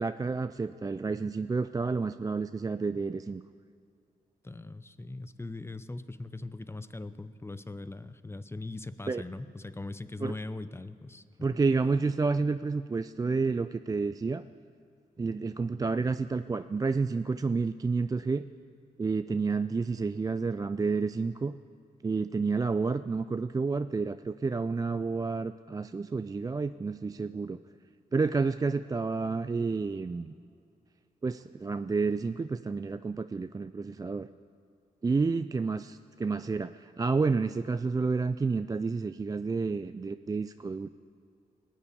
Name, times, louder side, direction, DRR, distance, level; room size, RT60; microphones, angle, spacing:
voice 1, 0.0-3.4 9.1-9.2 10.2-10.3 11.4-14.4 15.2-18.4 19.0-21.5 22.0-27.6 28.1-30.3 31.2-34.3 35.0-40.9, right 4 dB, 20° right, 11 dB, 0.3 m, -30 dB
voice 2, 4.4-11.2, left 2 dB, 15° left, 13 dB, 0.6 m, -40 dB
19.5 x 7.4 x 8.4 m, 2.4 s
cardioid pair, 60°, 16 cm